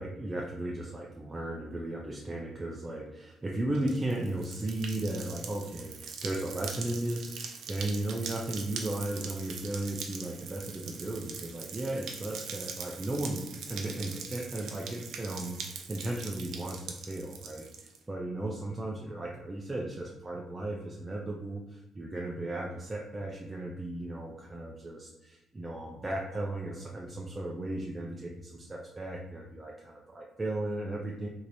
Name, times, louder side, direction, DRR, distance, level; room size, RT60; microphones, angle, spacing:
voice 1, 0.0-31.3, right 1 dB, 20° right, -1 dB, 0.5 m, -35 dB
sound 1, 3.7-18.0, right 6 dB, 75° right, 0.5 m, -42 dB
3.1 x 2.7 x 3.9 m, 0.96 s
cardioid pair, 90°, 0 cm